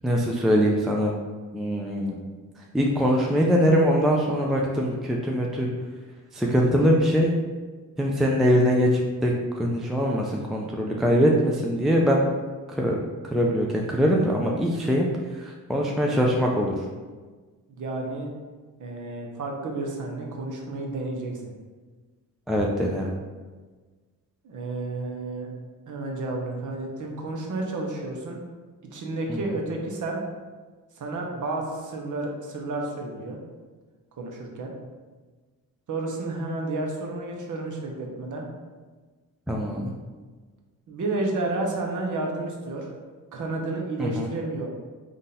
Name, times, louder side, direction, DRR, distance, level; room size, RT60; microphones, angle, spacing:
voice 1, 0.0-1.1 1.5-2.2 2.7-5.7 6.3-7.3 8.0-12.2 12.7-13.0 13.2-15.1 15.3-16.7 22.5-23.1 29.3-29.4 39.5-39.9 44.0-44.3, equal, ahead, -2 dB, 0.4 m, -22 dB
voice 2, 17.7-18.3 18.8-21.3 24.4-25.5 25.9-28.4 28.9-30.2 31.0-33.4 34.2-34.7 35.9-38.5 40.9-42.9 43.3-44.7, right 2 dB, 60° right, 1 dB, 0.9 m, -31 dB
3.7 x 2.5 x 4.1 m, 1.4 s
cardioid pair, 80°, 35 cm